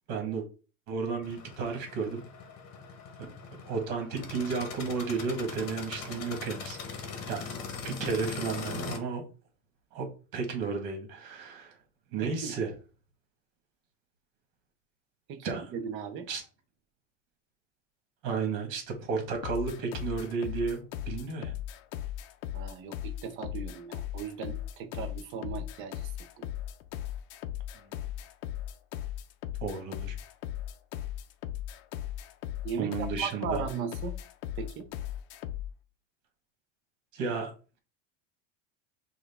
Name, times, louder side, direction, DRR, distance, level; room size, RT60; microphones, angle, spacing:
voice 1, 0.1-0.5 0.9-2.2 3.7-7.5 7.8-9.2 9.9-10.1 10.3-11.7 12.1-12.7 15.4-15.7 16.3-16.4 18.2-21.5 29.6-30.1 32.8-33.6 37.1-37.5, right 5 dB, 50° right, 1.4 m, -33 dB
sound 1, 1.2-9.0, left 5 dB, 40° left, 1.0 m, -41 dB
voice 2, 12.2-12.6 15.3-16.3 22.5-26.1 26.4-26.5 32.6-34.2 34.6-34.9, right 6 dB, 30° right, 0.5 m, -37 dB
sound 2, 19.4-35.7, left 12 dB, 55° left, 0.6 m, -37 dB
6.3 x 2.4 x 3.4 m
supercardioid pair, 145°, 40 cm